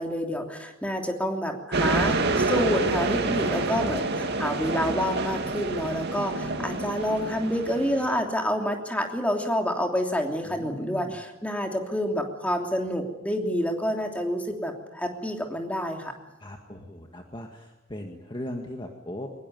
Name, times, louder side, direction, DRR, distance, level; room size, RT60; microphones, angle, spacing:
voice 1, 0.0-16.1, equal, 5° left, 3 dB, 3.1 m, -28 dB
sound 1, 1.7-8.2, right 3 dB, 50° right, 2.4 m, -27 dB
voice 2, 6.4-6.8 10.4-11.1 16.4-19.3, left 1 dB, 20° left, 3 dB, 1.9 m, -39 dB
23.0 x 21.0 x 9.5 m, 1.0 s
head